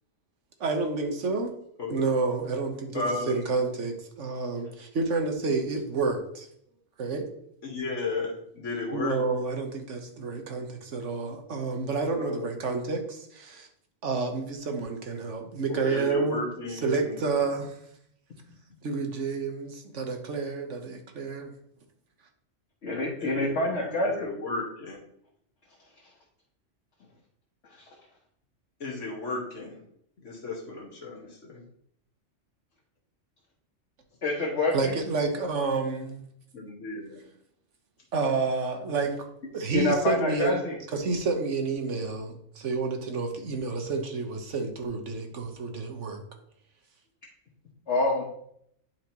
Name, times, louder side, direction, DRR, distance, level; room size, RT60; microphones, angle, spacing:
voice 1, 0.6-1.5 1.9-6.5 7.0-7.3 8.9-13.7 14.0-16.4 16.7-17.8 18.8-21.5 34.7-36.2 38.1-39.2 39.5-46.2, right 4 dB, 75° right, 4 dB, 1.5 m, -29 dB
voice 2, 2.9-3.4 7.6-8.3 8.6-9.2 12.2-12.5 15.7-17.1 23.2-23.5 24.0-25.0 28.8-29.7 30.3-31.6 36.5-37.2, left 3 dB, 85° left, -1 dB, 2.0 m, -34 dB
voice 3, 22.8-24.3 34.2-34.7 39.7-40.7 47.9-48.2, left 2 dB, 65° left, -3 dB, 1.6 m, -26 dB
11.0 x 4.5 x 3.1 m, 0.70 s
omnidirectional pair, 1.2 m